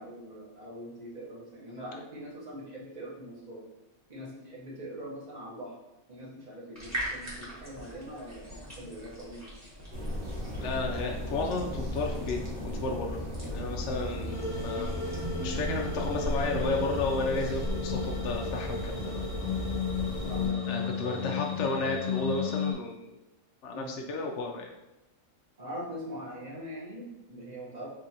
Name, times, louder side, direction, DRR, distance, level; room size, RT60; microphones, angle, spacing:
voice 1, 0.0-3.6 4.1-5.7 6.1-9.5 20.2-21.4 23.7-24.0 25.6-27.9, equal, 35° right, -4 dB, 1.2 m, -42 dB
sound 1, 6.7-15.2, equal, 15° right, 1.2 m, -43 dB
sound 2, 9.9-20.5, equal, 85° right, 1.8 m, -35 dB
voice 2, 10.6-19.2 20.7-23.1 23.6-24.7, left 3 dB, 65° left, 1 dB, 0.8 m, -33 dB
sound 3, 14.3-22.7, left 5 dB, 45° left, 0.4 m, -34 dB
3.7 x 3.7 x 2.8 m, 0.98 s
omnidirectional pair, 1.4 m